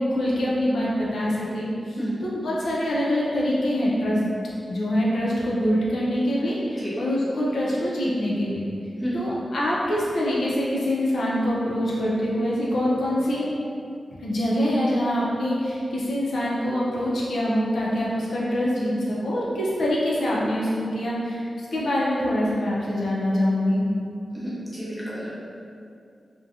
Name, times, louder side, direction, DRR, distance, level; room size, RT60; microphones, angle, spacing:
voice 1, 0.0-4.2 4.7-8.6 9.1-13.5 14.2-21.5 21.7-23.8, equal, 85° left, -6 dB, 0.5 m, -24 dB
voice 2, 24.3-25.3, equal, 5° right, -10 dB, 0.6 m, -31 dB
2.7 x 2.1 x 2.4 m, 2.4 s
wide cardioid pair, 175°, 0 cm